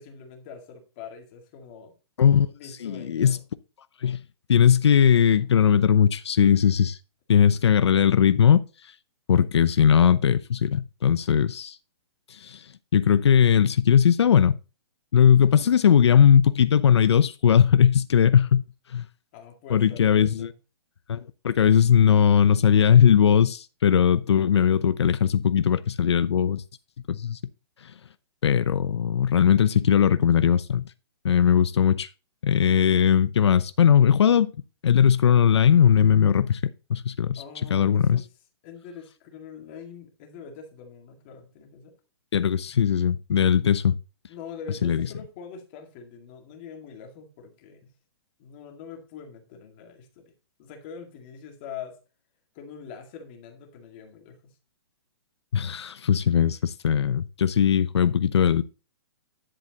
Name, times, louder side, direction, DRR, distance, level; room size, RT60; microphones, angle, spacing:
voice 1, 0.0-1.9 2.5-3.4 15.6-15.8 19.3-20.6 37.4-38.3 38.6-41.9 44.3-47.9 48.4-50.3 50.6-52.0 52.5-54.5, left 6 dB, 25° left, 2.0 m, -43 dB
voice 2, 2.8-3.4 4.0-4.2 4.5-7.0 7.3-8.6 9.3-11.8 12.3-12.6 12.9-14.5 15.1-18.6 18.9-19.1 19.7-20.5 21.1-26.6 27.1-27.4 28.4-30.8 31.2-32.1 32.4-34.5 34.8-36.6 36.9-37.4 37.7-38.2 42.3-44.0 44.8-45.1 55.5-58.6, left 8 dB, 85° left, 0.7 m, -19 dB
10.5 x 7.9 x 2.9 m
hypercardioid pair, 180°, 14 cm